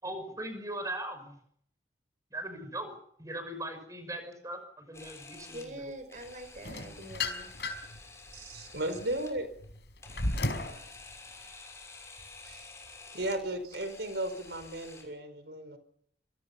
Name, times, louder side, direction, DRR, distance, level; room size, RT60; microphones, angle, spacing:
voice 1, 0.0-1.4 2.3-2.9 3.2-5.9, right 1 dB, 20° right, 8 dB, 6.0 m, -39 dB
Camera, 4.9-15.0, left 3 dB, 15° left, 6.1 m, -51 dB
voice 2, 5.5-7.5, right 1 dB, 45° right, 9 dB, 5.4 m, -44 dB
sound 1, 6.6-8.0 8.5-10.8, left 2 dB, 70° left, 4.9 m, -34 dB
voice 3, 8.3-9.5 12.4-12.7 13.1-15.8, right 1 dB, 70° right, 10 dB, 4.7 m, -35 dB
27.0 x 24.5 x 5.8 m, 0.68 s
head